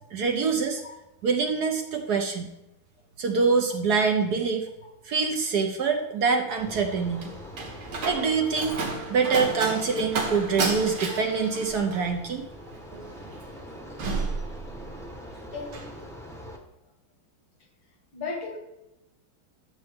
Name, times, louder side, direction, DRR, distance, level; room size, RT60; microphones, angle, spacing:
voice 1, 0.1-0.8 1.2-2.5 3.2-4.7 5.0-7.3 8.0-8.8 9.1-12.5, right 5 dB, 65° right, 5 dB, 1.2 m, -25 dB
sound 1, 6.6-16.6, left 2 dB, ahead, 0.7 m, -42 dB
Slam, 6.7-15.2 15.5-15.9, right 3 dB, 85° right, 2.3 m, -33 dB
voice 2, 15.5-15.9 18.1-18.6, left 3 dB, 75° left, 2 dB, 2.5 m, -35 dB
12.0 x 6.7 x 3.5 m, 0.94 s
omnidirectional pair, 2.2 m